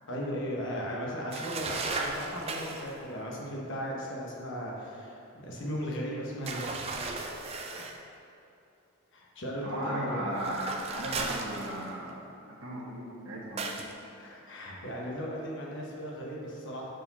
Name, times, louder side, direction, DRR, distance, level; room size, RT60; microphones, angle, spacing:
voice 1, 0.1-7.3 7.7-7.9 9.1-10.4 14.2-16.9, equal, 55° left, -3 dB, 1.1 m, -37 dB
sound 1, 1.3-2.9 6.5-8.0 10.4-12.1 13.6-13.9, right 3 dB, 25° right, 0.3 m, -36 dB
voice 2, 9.6-13.7, right 1 dB, 65° right, -5 dB, 1.4 m, -36 dB
6.4 x 4.5 x 4.1 m, 2.8 s
head